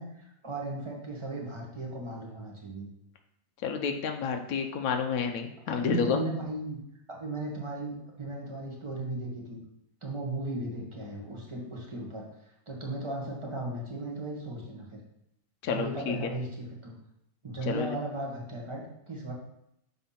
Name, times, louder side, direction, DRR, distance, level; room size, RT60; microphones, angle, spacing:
voice 1, 0.0-2.9 5.6-6.8 7.1-9.6 10.0-12.3 12.7-14.9 15.7-16.9 17.4-19.3, right 2 dB, 20° right, -1 dB, 1.4 m, -36 dB
voice 2, 3.6-6.2 15.6-16.2 17.7-17.9, left 6 dB, 65° left, 4 dB, 1.0 m, -30 dB
6.9 x 4.1 x 5.7 m, 0.79 s
omnidirectional pair, 1.9 m